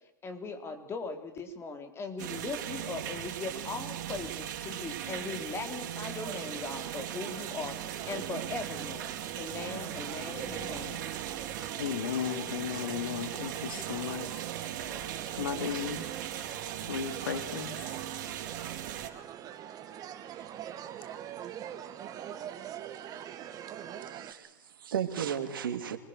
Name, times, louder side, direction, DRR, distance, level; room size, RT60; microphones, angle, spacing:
voice 1, 0.2-9.1 9.4-11.1, left 4 dB, 25° left, 7 dB, 3.7 m, -39 dB
sound 1, 2.2-19.1, right 11 dB, 65° right, 3.8 m, -38 dB
sound 2, 6.0-24.3, right 10 dB, 35° right, 2.1 m, -44 dB
voice 2, 11.8-14.4 15.4-16.1 16.9-17.8, left 8 dB, 80° left, 10 dB, 2.9 m, -35 dB
voice 3, 24.0-26.0, right 9 dB, 85° right, 8 dB, 2.8 m, -34 dB
26.5 x 21.0 x 6.7 m, 0.90 s
hypercardioid pair, 115°, 11 cm